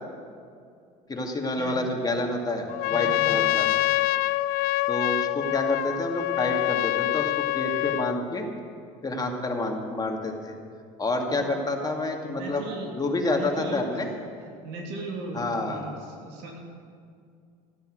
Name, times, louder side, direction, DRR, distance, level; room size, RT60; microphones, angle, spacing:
voice 1, 1.1-3.7 4.9-8.5 9.0-10.5 11.0-12.7 12.9-14.1 15.3-15.8, left 2 dB, 20° left, 2 dB, 2.4 m, -28 dB
Trumpet, 2.7-8.2, left 18 dB, 55° left, 0.4 m, -25 dB
voice 2, 2.8-3.4 11.3-11.5 12.3-12.9 13.2-14.0 14.6-16.6, right 2 dB, 65° right, 0 dB, 2.9 m, -38 dB
14.5 x 10.5 x 8.0 m, 2.3 s
hypercardioid pair, 80°, 18 cm